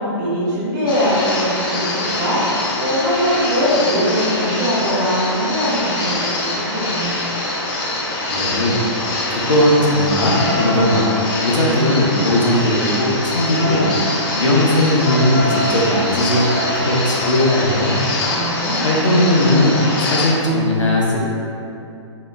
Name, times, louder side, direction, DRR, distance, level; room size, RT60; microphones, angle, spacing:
voice 1, 0.0-1.9 2.1-7.1 18.2-19.0, equal, 35° right, -7 dB, 0.8 m, -21 dB
sound 1, 0.9-20.3, left 1 dB, 45° left, 0.6 m, -23 dB
voice 2, 8.3-8.8 9.3-11.1 11.4-13.9 14.3-18.0 18.8-21.2, left 1 dB, 85° left, -3 dB, 0.6 m, -17 dB
2.9 x 2.1 x 2.3 m, 2.7 s
hypercardioid pair, 145°, 15 cm